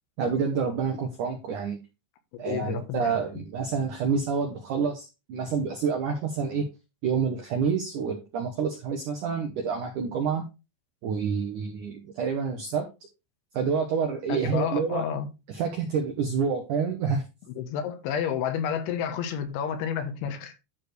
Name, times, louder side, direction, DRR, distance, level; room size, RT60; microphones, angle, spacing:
voice 1, 0.2-1.8 2.4-6.7 7.0-10.4 11.0-12.9 13.5-15.1 15.5-17.2, right 6 dB, 80° right, 1.8 m, -28 dB
voice 2, 2.3-3.1 14.3-15.3 17.6-20.6, left 8 dB, 85° left, 3.5 m, -30 dB
11.5 x 4.6 x 3.3 m
omnidirectional pair, 5.2 m